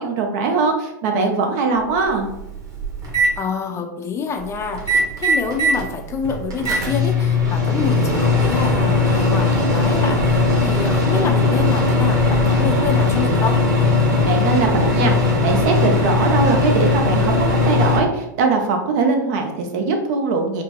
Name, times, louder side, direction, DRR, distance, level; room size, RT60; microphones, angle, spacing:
voice 1, 0.0-2.2 14.2-20.6, right 4 dB, 55° right, 3 dB, 0.8 m, -21 dB
Microwave oven, 1.8-1.9 2.3-3.3 4.7-5.8 6.2-18.0, left 3 dB, 30° right, 1.3 m, -18 dB
voice 2, 3.4-13.6, left 6 dB, 25° left, 5 dB, 0.5 m, -27 dB
5.0 x 2.1 x 3.0 m, 0.89 s
hypercardioid pair, 105°, 10 cm